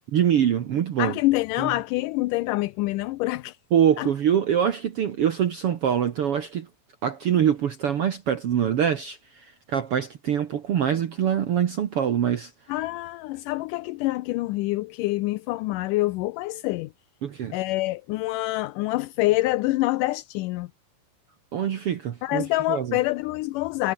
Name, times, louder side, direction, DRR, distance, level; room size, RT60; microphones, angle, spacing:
voice 1, 0.1-1.1 1.6-1.7 3.7-6.7 7.0-12.5 17.2-17.5 21.5-23.0, right 9 dB, 60° right, 1.6 m, -24 dB
voice 2, 1.0-3.6 4.0-4.1 12.7-16.9 17.5-20.7 22.2-23.9, left 19 dB, 80° left, 2.1 m, -26 dB
omnidirectional pair, 4.0 m